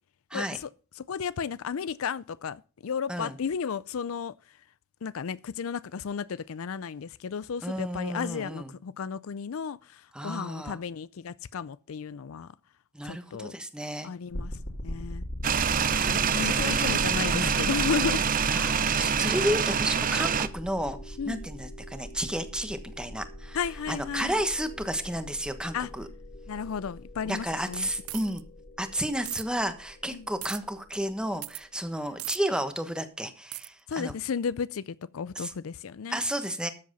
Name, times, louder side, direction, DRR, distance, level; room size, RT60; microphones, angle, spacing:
voice 1, 0.3-0.7 1.0-4.3 5.0-12.5 13.0-13.5 14.0-14.5 14.8-15.3 16.0-18.2 21.2-21.4 23.5-24.4 25.7-25.9 26.5-27.9 30.1-30.3 33.9-36.2, left 6 dB, 75° left, 0.4 m, -33 dB
voice 2, 7.6-8.7 10.1-10.8 12.9-14.1 16.4-17.0 17.3-17.6 18.5-23.6 23.9-26.1 27.2-28.4 28.8-34.1 35.3-35.5 36.1-36.7, equal, 5° right, 1.2 m, -32 dB
sound 1, 14.3-31.2, left 1 dB, 50° left, 2.3 m, -40 dB
sound 2, 15.4-20.5, right 7 dB, 40° right, 0.7 m, -26 dB
sound 3, 28.1-28.4 29.3-29.4 30.4-30.6 31.4-31.6 32.2-32.4 33.5-33.7, right 19 dB, 80° right, 0.4 m, -37 dB
13.0 x 7.7 x 5.3 m
head